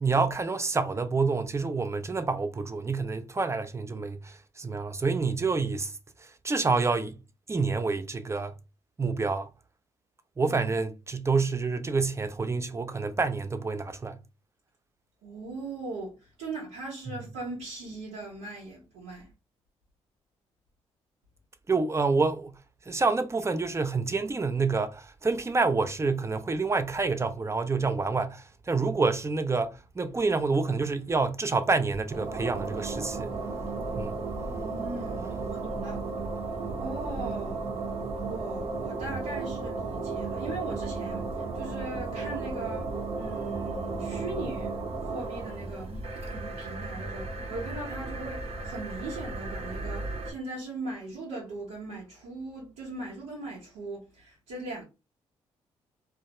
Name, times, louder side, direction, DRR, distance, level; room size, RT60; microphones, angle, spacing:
voice 1, 0.0-7.2 7.5-8.5 9.0-9.5 10.4-14.2 21.7-22.5 22.9-33.3 33.9-34.2, right 4 dB, 20° right, 0.4 m, -28 dB
voice 2, 15.2-19.3 34.5-36.0 36.8-37.8 38.2-46.0 46.3-54.8, right 2 dB, 90° right, 1.0 m, -39 dB
sound 1, 31.9-50.3, right 3 dB, 55° right, 0.8 m, -34 dB
2.3 x 2.1 x 2.9 m
supercardioid pair, 55°, 13 cm